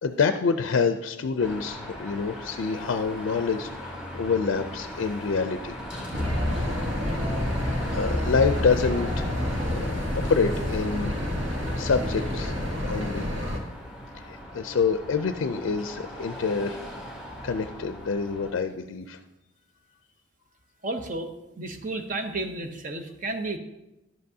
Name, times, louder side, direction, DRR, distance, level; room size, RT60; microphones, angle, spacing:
voice 1, 0.0-5.8 7.9-9.3 9.6-11.2 11.5-12.6 12.9-13.3 14.1-16.8 17.4-19.2, left 5 dB, 75° left, 8 dB, 0.4 m, -27 dB
Car passing by / Traffic noise roadway noise / Engine, 1.4-18.5, equal, 5° right, 1.2 m, -39 dB
sound 1, 6.1-13.6, left 1 dB, 75° right, 1.5 m, -28 dB
voice 2, 20.8-21.3 21.6-23.6, right 2 dB, 40° right, 6 dB, 0.6 m, -32 dB
11.0 x 7.7 x 2.7 m, 0.96 s
head